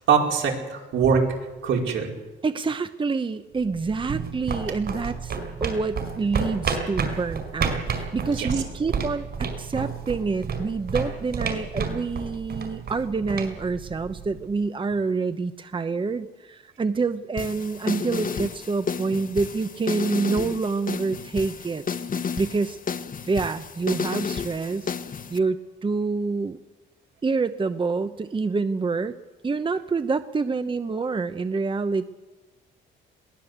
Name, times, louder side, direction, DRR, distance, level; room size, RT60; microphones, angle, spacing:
voice 1, 0.1-1.2 1.6-2.1 8.1-8.5, right 6 dB, 75° right, 1 dB, 4.9 m, -22 dB
voice 2, 2.4-5.4 5.6-21.8 22.4-22.8 23.3-24.9 25.3-26.6 27.2-29.2 29.4-32.0, right 4 dB, 25° right, 11 dB, 0.9 m, -27 dB
sound 1, 3.6-14.4, right 5 dB, 55° right, 4.9 m, -31 dB
sound 2, 17.4-25.4, left 6 dB, 45° left, 1.4 m, -32 dB
22.0 x 16.5 x 8.1 m, 1.2 s
cardioid pair, 90°, 20 cm